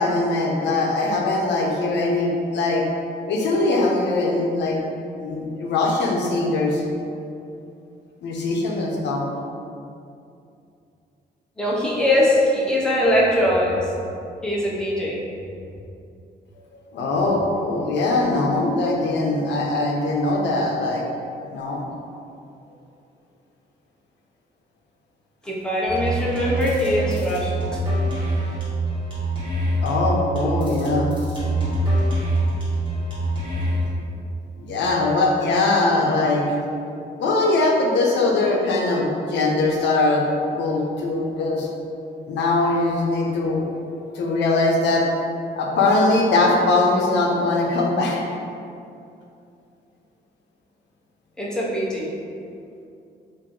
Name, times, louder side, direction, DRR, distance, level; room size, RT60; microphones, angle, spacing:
voice 1, 0.0-2.8 3.3-4.8 5.2-6.8 8.2-9.2 16.9-21.2 21.5-21.8 29.8-31.1 34.6-36.5 37.2-40.3 40.6-41.7 42.3-43.7 44.1-45.1 45.6-48.2, left 2 dB, 85° left, -1 dB, 0.6 m, -21 dB
voice 2, 11.6-13.9 14.4-15.2 25.4-27.8 51.4-52.1, left 1 dB, 5° left, -6 dB, 0.6 m, -21 dB
sound 1, 25.9-33.9, right 1 dB, 30° right, 1.3 m, -24 dB
3.0 x 2.5 x 3.7 m, 2.5 s
cardioid pair, 150°, 18 cm